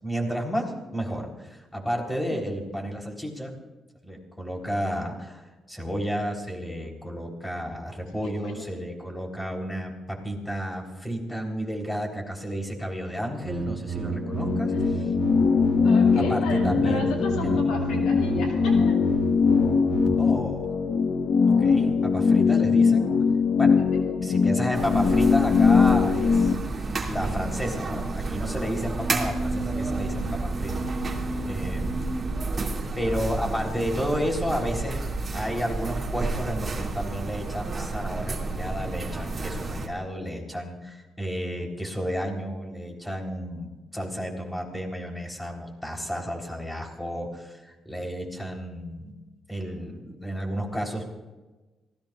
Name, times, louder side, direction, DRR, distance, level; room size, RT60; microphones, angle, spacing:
voice 1, 0.0-3.5 4.0-5.4 5.7-15.1 16.2-17.7 20.2-20.7 21.5-23.1 23.6-23.8 24.2-26.6 27.1-30.9 31.5-32.0 33.0-35.0 35.3-49.2 49.5-51.2, equal, 10° left, 1 dB, 3.8 m, -32 dB
voice 2, 8.2-8.7 15.8-19.0 23.8-24.0, left 3 dB, 90° left, 1 dB, 2.4 m, -35 dB
sound 1, 13.4-20.1, right 6 dB, 75° right, 1.9 m, -32 dB
sound 2, 14.0-26.5, left 5 dB, 70° left, 1.1 m, -21 dB
sound 3, 24.7-39.9, right 3 dB, 30° right, 2.6 m, -30 dB
26.5 x 17.5 x 2.5 m, 1.2 s
cardioid pair, 90°, 0 cm